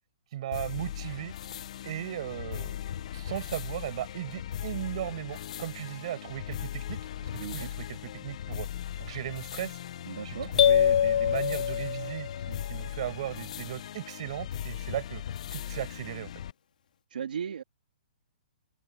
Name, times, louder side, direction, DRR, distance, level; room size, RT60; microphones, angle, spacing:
voice 1, 0.3-1.3 1.8-2.8 3.1-7.0 7.3-8.7 9.0-9.8 10.2-15.2 15.5-16.3, right 12 dB, 40° right, 7.0 m, -37 dB
sound 1, 0.5-16.5, left 10 dB, 45° left, 0.9 m, -38 dB
voice 2, 7.4-7.7 10.1-10.5 17.1-17.6, right 7 dB, 75° right, 3.0 m, -36 dB
sound 2, 10.6-12.5, left 9 dB, 60° left, 2.8 m, -24 dB
open air
hypercardioid pair, 170°, 5 cm